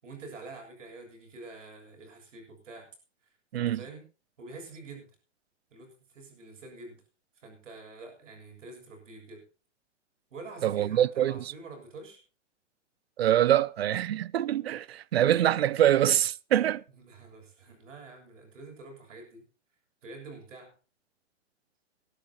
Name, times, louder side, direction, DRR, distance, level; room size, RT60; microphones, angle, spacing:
voice 1, 0.0-2.9 3.5-4.1 4.4-5.1 5.7-7.0 7.4-9.4 10.3-12.2 17.0-19.5 20.0-20.7, right 3 dB, 80° right, 7.6 m, -47 dB
voice 2, 3.5-3.8 10.6-11.5 13.2-16.8, right 11 dB, 55° right, 0.6 m, -24 dB
20.5 x 12.0 x 3.0 m
hypercardioid pair, 170°, 37 cm